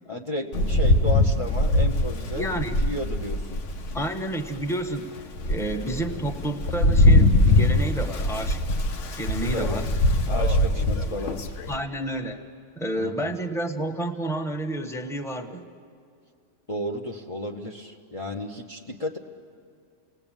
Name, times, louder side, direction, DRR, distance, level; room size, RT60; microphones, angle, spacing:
voice 1, 0.0-2.5 2.8-3.6 9.5-9.8 10.3-11.4 13.0-13.3 16.7-19.2, left 1 dB, 30° left, 4 dB, 1.0 m, -33 dB
Rain, 0.5-4.1 4.6-4.7 5.2-11.8, left 1 dB, 70° left, 1.3 m, -22 dB
voice 2, 2.3-2.8 3.9-5.1 5.5-8.6 9.2-9.9 11.7-12.4 12.8-15.7, right 1 dB, ahead, 4 dB, 1.2 m, -30 dB
29.5 x 19.0 x 9.0 m, 2.2 s
omnidirectional pair, 1.3 m